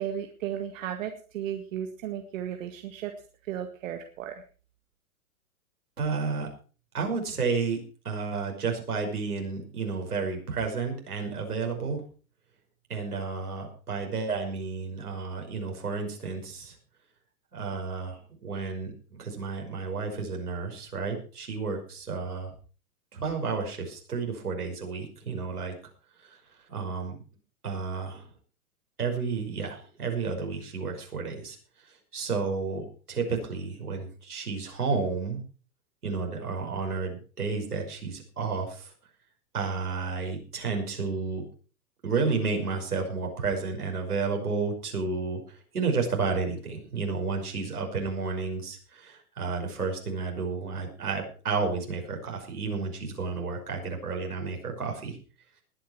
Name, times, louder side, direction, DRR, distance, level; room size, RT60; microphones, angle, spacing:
voice 1, 0.0-3.1 3.5-4.4, right 10 dB, 60° right, 5 dB, 1.9 m, -34 dB
voice 2, 6.0-6.5 6.9-12.0 12.9-16.8 17.5-22.5 23.1-25.8 26.2-26.4 26.7-27.2 27.6-28.3 29.0-31.6 32.1-35.4 36.0-38.9 39.5-41.4 42.0-55.2, right 4 dB, 85° right, 2 dB, 5.8 m, -31 dB
20.0 x 9.3 x 4.5 m, 0.37 s
hypercardioid pair, 110°, 44 cm